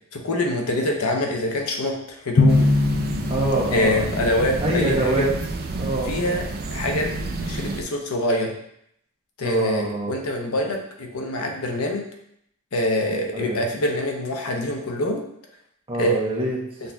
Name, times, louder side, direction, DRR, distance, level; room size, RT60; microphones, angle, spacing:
voice 1, 0.1-2.7 3.7-5.3 6.0-6.4 6.7-7.1 7.5-8.5 9.4-12.0 12.7-15.2 16.0-16.1, left 1 dB, 90° left, 2 dB, 0.7 m, -25 dB
Drum, 2.4-4.5, left 2 dB, 45° left, 0.5 m, -21 dB
sound 1, 2.5-7.8, right 2 dB, 45° right, 0.4 m, -30 dB
voice 2, 3.3-4.0 4.6-5.3 5.7-6.4 9.4-10.2 13.3-13.6 15.9-16.6, right 1 dB, 25° right, -3 dB, 0.9 m, -25 dB
6.4 x 2.7 x 2.3 m, 0.73 s
head